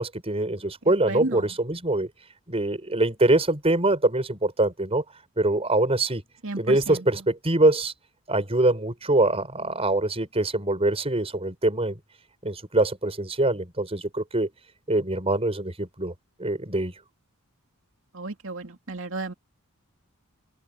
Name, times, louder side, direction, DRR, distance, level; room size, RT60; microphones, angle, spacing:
voice 1, 0.0-2.1 2.5-5.0 5.4-6.2 6.6-7.9 8.3-12.0 12.4-14.5 14.9-16.1 16.4-16.9, right 2 dB, 25° right, 5.7 m, -24 dB
voice 2, 1.1-1.4 6.4-7.0 18.1-19.3, right 2 dB, 65° right, 2.7 m, -33 dB
open air
head